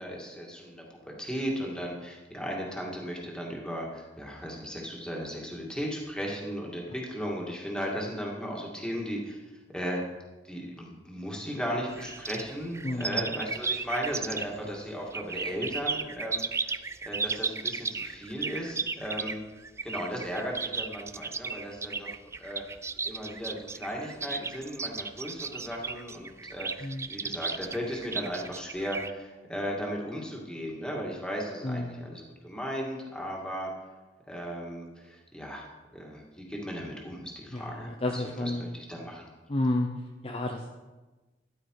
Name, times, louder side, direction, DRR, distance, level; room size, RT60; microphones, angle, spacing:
voice 1, 0.0-9.4 9.7-10.0 10.4-16.7 17.0-19.4 19.8-22.1 22.4-22.6 23.1-33.7 34.3-35.7 35.9-39.3, equal, 5° left, -2 dB, 2.3 m, -36 dB
sound 1, 11.9-14.7 15.1-29.1, right 4 dB, 15° right, 0.3 m, -34 dB
voice 2, 12.8-13.3 26.8-27.1 31.6-32.1 37.5-38.7 39.5-39.9 40.2-40.7, left 1 dB, 35° left, 2 dB, 0.7 m, -31 dB
12.5 x 11.0 x 4.9 m, 1.2 s
head